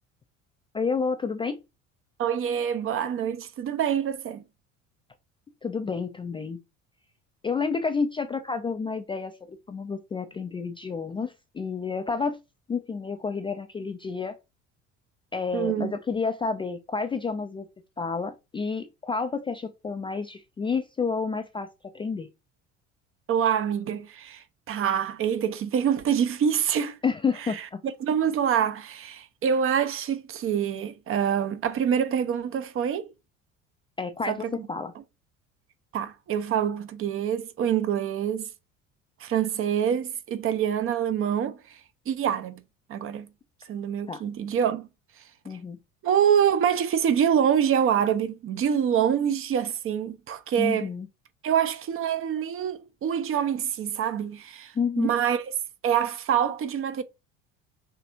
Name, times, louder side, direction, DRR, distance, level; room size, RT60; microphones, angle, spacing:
voice 1, 0.7-1.6 5.6-6.6 7.4-12.4 12.7-14.4 15.3-17.7 18.0-22.3 27.0-27.8 34.0-34.9 44.1-44.2 45.5-45.8 50.6-51.1 54.8-55.1, left 5 dB, 15° left, 0.4 m, -30 dB
voice 2, 2.2-4.4 15.5-16.0 23.3-27.0 27.4-27.6 28.0-33.1 34.3-34.5 35.9-38.5 39.2-41.8 42.1-42.6 42.9-43.3 43.7-44.9 45.5-45.6 46.0-50.9 51.4-55.4 55.8-57.0, right 8 dB, 35° right, 0.6 m, -26 dB
5.6 x 3.3 x 2.6 m
figure-of-eight pair, 60°, 38 cm